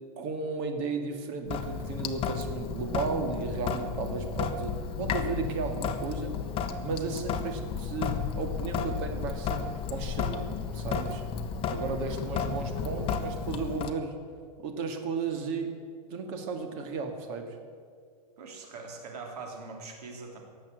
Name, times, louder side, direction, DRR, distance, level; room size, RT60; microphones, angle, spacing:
voice 1, 0.2-6.3 6.8-9.6 9.9-11.2 11.7-14.2 14.6-15.8 16.1-17.6, right 4 dB, 50° right, 5 dB, 2.2 m, -34 dB
Sink (filling or washing) / Drip, 1.5-13.9, left 6 dB, 30° left, 0.9 m, -33 dB
voice 2, 11.8-12.2 18.4-20.4, right 4 dB, 80° right, 1 dB, 3.4 m, -42 dB
18.0 x 7.6 x 7.9 m, 2.1 s
supercardioid pair, 150°, 20 cm